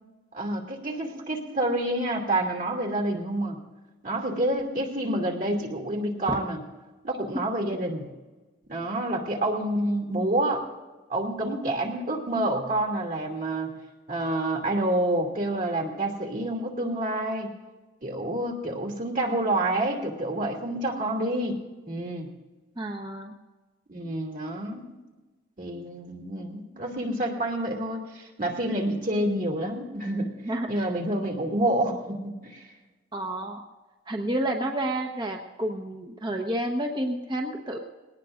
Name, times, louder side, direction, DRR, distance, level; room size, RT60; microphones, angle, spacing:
voice 1, 0.3-3.6 4.0-6.6 7.0-8.1 8.7-10.6 11.1-13.8 14.1-17.5 18.0-21.6 21.9-22.3 23.9-24.9 25.6-30.3 30.7-32.7, right 1 dB, 45° right, 1 dB, 2.7 m, -28 dB
voice 2, 22.8-23.4 30.4-30.9 33.1-33.6 34.1-37.8, right 1 dB, 25° right, 2 dB, 1.1 m, -30 dB
21.0 x 18.5 x 2.6 m, 1.2 s
head